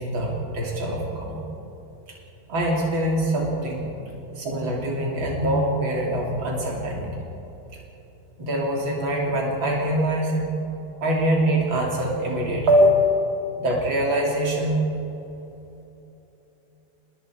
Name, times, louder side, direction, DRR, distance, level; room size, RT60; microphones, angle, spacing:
voice 1, 0.0-1.4 2.5-3.9 4.4-7.1 8.4-10.5 11.0-13.1 13.6-14.8, equal, 80° right, -2 dB, 3.7 m, -23 dB
28.5 x 20.0 x 4.8 m, 3.0 s
omnidirectional pair, 2.2 m